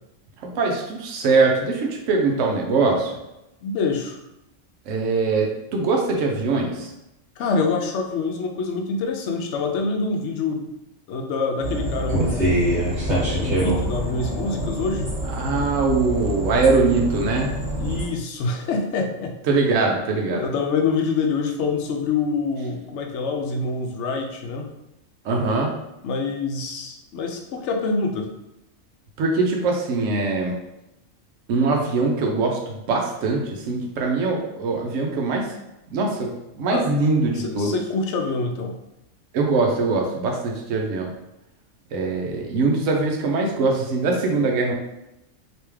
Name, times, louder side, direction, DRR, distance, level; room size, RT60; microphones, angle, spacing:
voice 1, 0.4-3.2 4.9-6.9 15.2-17.6 19.5-20.5 25.2-25.7 29.2-30.6 31.5-35.5 35.9-37.7 39.3-41.1 41.9-44.7, right 3 dB, 75° right, 0 dB, 1.0 m, -22 dB
voice 2, 3.6-4.2 7.4-10.7 11.1-12.7 13.3-15.1 17.8-19.3 20.3-24.7 26.0-28.3 36.7-36.9 37.3-38.8, left 4 dB, 70° left, 3 dB, 0.9 m, -26 dB
sound 1, 11.6-18.1, right 1 dB, 40° right, 1.4 m, -25 dB
3.4 x 2.9 x 3.2 m, 0.90 s
omnidirectional pair, 1.3 m